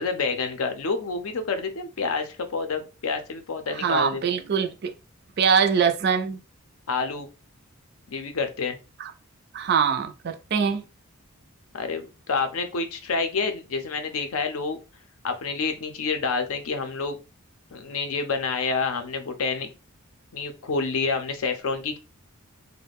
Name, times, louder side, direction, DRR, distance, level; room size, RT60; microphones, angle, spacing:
voice 1, 0.0-4.2 6.9-7.3 8.1-8.8 11.7-14.8 15.2-17.2 17.7-19.7 20.3-22.0, left 4 dB, 70° left, 0.5 m, -28 dB
voice 2, 3.8-4.9 5.4-6.4 9.0-9.1 9.5-10.8, right 6 dB, 45° right, 0.3 m, -23 dB
2.3 x 2.1 x 3.4 m
head